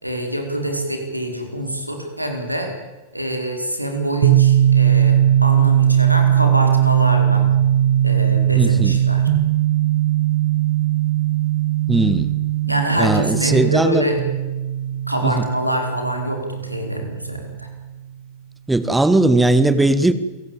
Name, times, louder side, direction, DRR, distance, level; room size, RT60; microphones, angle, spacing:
voice 1, 0.0-2.7 3.1-7.4 8.0-9.2 12.6-14.2 15.1-17.7, equal, 90° right, 4 dB, 4.7 m, -25 dB
sound 1, 4.2-17.8, right 11 dB, 55° right, 1.4 m, -18 dB
voice 2, 8.6-9.0 11.9-12.3 13.0-14.0 15.2-15.4 18.7-20.1, right 2 dB, 5° right, 13 dB, 1.8 m, -18 dB
28.0 x 17.5 x 9.0 m, 1.2 s
figure-of-eight pair, 90°, 0 cm